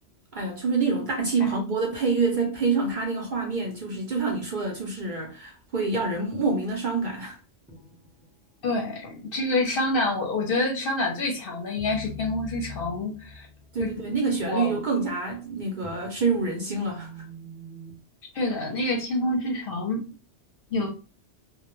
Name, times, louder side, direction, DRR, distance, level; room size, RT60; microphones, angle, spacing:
voice 1, 0.3-7.4 13.7-17.1, right 4 dB, 50° right, 0.6 m, -27 dB
sound 1, 7.7-8.3 11.8-14.9 15.3-18.0, left 2 dB, 10° right, 0.5 m, -43 dB
voice 2, 8.6-13.5 13.8-13.9 14.5-14.8 18.3-20.0 20.7-20.9, left 2 dB, 55° left, 0.7 m, -27 dB
2.1 x 2.1 x 3.0 m
omnidirectional pair, 1.2 m